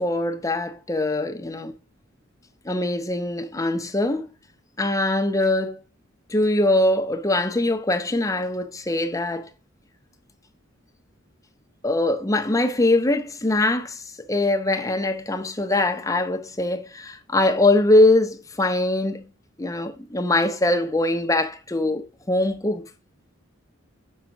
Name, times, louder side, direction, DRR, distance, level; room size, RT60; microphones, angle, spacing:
voice 1, 0.0-1.7 2.6-4.3 4.8-5.8 6.3-9.5 11.8-19.3 19.6-22.8, left 2 dB, 15° left, 0.7 m, -22 dB
5.5 x 5.1 x 5.9 m
head